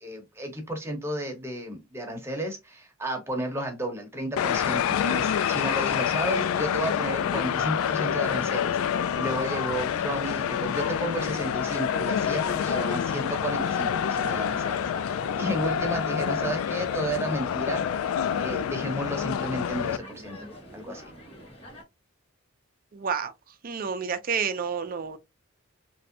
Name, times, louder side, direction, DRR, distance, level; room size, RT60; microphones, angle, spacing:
voice 1, 0.0-18.1 18.4-20.4 20.7-21.0, right 1 dB, 10° right, 0.9 m, -32 dB
sound 1, 4.4-20.0, left 8 dB, 80° left, 0.3 m, -27 dB
sound 2, 6.6-21.8, equal, 30° left, 1.3 m, -44 dB
voice 2, 22.9-23.3 23.6-25.2, right 6 dB, 40° right, 0.4 m, -29 dB
3.1 x 2.6 x 2.6 m
head